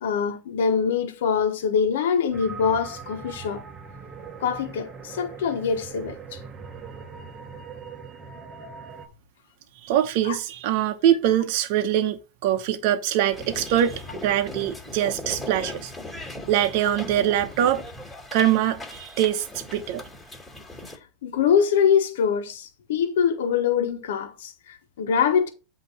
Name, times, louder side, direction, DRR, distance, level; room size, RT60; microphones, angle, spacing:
voice 1, 0.0-3.6 4.4-6.4 10.2-10.4 21.2-25.5, left 7 dB, 80° left, 1.1 m, -24 dB
sound 1, 2.3-9.1, right 5 dB, 25° right, 1.2 m, -40 dB
voice 2, 9.8-15.9 16.5-17.8 18.3-20.0, right 11 dB, 60° right, 0.8 m, -23 dB
sound 2, 13.3-21.0, left 1 dB, 5° left, 2.7 m, -39 dB
8.2 x 2.9 x 5.6 m
supercardioid pair, 130°, 0 cm